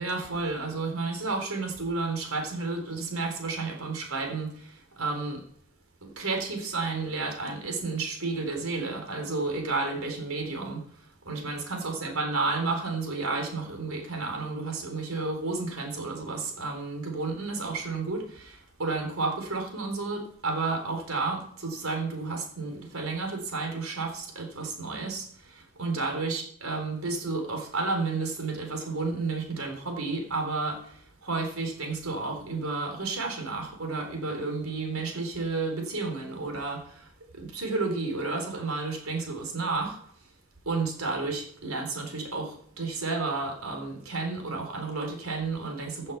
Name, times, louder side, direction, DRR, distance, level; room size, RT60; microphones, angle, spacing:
voice 1, 0.0-5.4 6.0-10.9 11.3-40.0 40.7-46.1, right 3 dB, 80° right, 3 dB, 3.9 m, -31 dB
15.5 x 7.5 x 5.8 m, 0.63 s
head